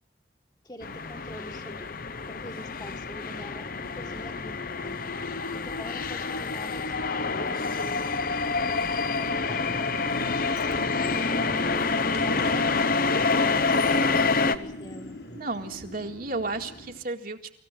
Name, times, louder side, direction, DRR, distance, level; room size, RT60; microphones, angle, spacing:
voice 1, 0.6-1.9 2.3-5.0 5.5-15.2, left 1 dB, 20° left, 4 dB, 1.8 m, -44 dB
sound 1, 0.8-14.6, left 4 dB, 50° left, 1.0 m, -27 dB
sound 2, 7.3-17.0, equal, 65° left, 6.5 m, -36 dB
voice 2, 15.3-17.4, right 3 dB, 50° right, 3 dB, 2.0 m, -33 dB
26.0 x 15.0 x 8.7 m, 0.72 s
head